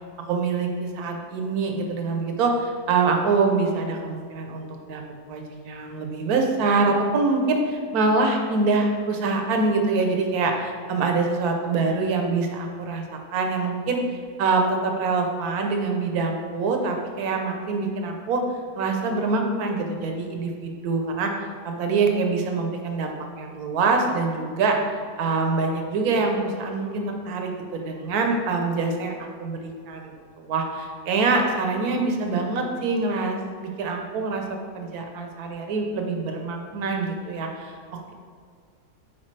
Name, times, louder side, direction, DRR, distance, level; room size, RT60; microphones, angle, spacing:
voice 1, 0.3-5.0 5.3-14.0 14.4-18.4 18.8-24.8 25.2-37.8, right 3 dB, 70° right, 3 dB, 1.3 m, -25 dB
7.3 x 4.7 x 3.2 m, 2.1 s
omnidirectional pair, 1.7 m